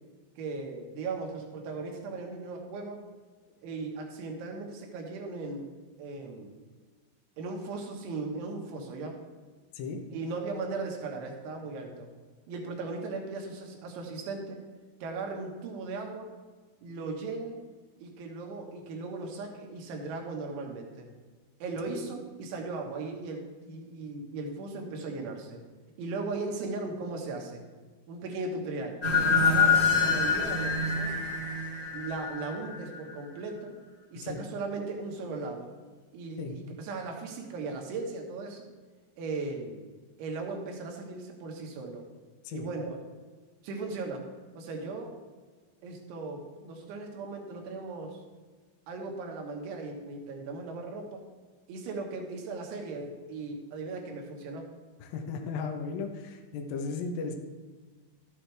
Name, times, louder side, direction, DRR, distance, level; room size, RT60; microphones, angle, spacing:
voice 1, 0.4-3.0 3.6-5.7 6.0-6.6 7.4-9.2 10.1-12.1 12.5-14.6 15.0-16.3 16.8-17.6 18.0-21.1 21.6-25.6 26.0-27.6 28.1-29.0 29.4-31.2 31.9-33.7 34.1-35.7 36.1-38.7 39.2-39.8 40.2-42.0 42.5-43.0 43.6-44.3 44.6-45.2 45.8-48.2 48.9-51.2 51.7-54.7, right 3 dB, 80° right, 1 dB, 3.8 m, -37 dB
sound 1, 29.0-33.0, left 5 dB, 25° left, 1.2 m, -26 dB
voice 2, 55.0-57.3, left 4 dB, 80° left, 3 dB, 2.0 m, -35 dB
12.5 x 8.8 x 3.4 m, 1.4 s
omnidirectional pair, 5.4 m